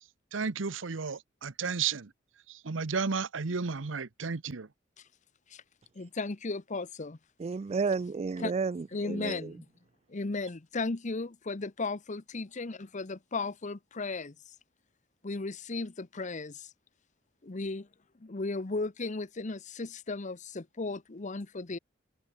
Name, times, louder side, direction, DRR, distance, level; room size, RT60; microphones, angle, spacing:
voice 1, 0.3-2.1 2.5-4.7, right 5 dB, 90° right, 0.9 m, -33 dB
voice 2, 6.0-7.2 8.4-8.5 8.9-9.6 10.1-14.3 15.2-16.7 17.4-17.9 18.2-21.8, left 3 dB, 40° left, 0.9 m, -35 dB
voice 3, 7.4-9.5, right 4 dB, 35° right, 0.3 m, -32 dB
head